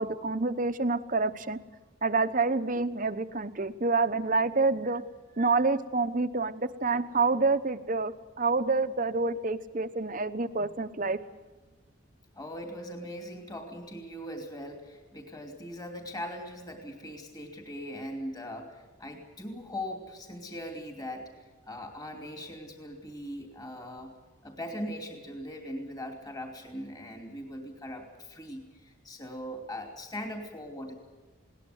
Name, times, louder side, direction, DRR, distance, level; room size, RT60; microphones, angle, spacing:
voice 1, 0.0-1.6 2.0-5.0 5.4-11.2, right 3 dB, 40° right, 11 dB, 0.9 m, -27 dB
voice 2, 12.4-21.3 21.7-24.1 24.4-31.0, equal, 20° left, 2 dB, 2.8 m, -40 dB
21.0 x 18.5 x 8.0 m, 1.3 s
head